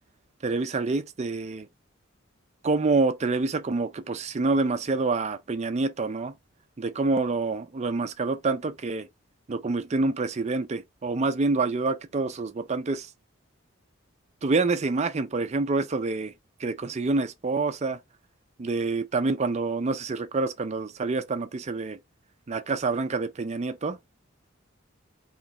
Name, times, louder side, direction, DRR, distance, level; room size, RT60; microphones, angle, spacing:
voice 1, 0.4-1.7 2.6-6.3 6.8-9.1 9.5-13.1 14.4-16.3 16.6-18.0 18.6-22.0 22.5-24.0, right 3 dB, 35° right, 0.4 m, -27 dB
4.5 x 3.1 x 3.8 m
head